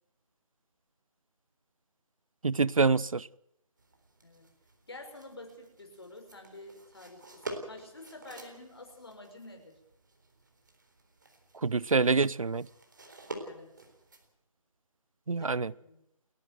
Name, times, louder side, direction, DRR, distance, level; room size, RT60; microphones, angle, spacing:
voice 1, 2.4-3.3 11.6-12.6 15.3-15.7, right 4 dB, 70° right, 0.7 m, -26 dB
sound 1, 3.8-14.3, right 2 dB, 35° right, 3.9 m, -48 dB
voice 2, 4.9-9.8 13.4-13.7 15.4-16.0, left 2 dB, 45° left, 5.9 m, -49 dB
30.0 x 11.5 x 7.8 m
figure-of-eight pair, 180°, 18 cm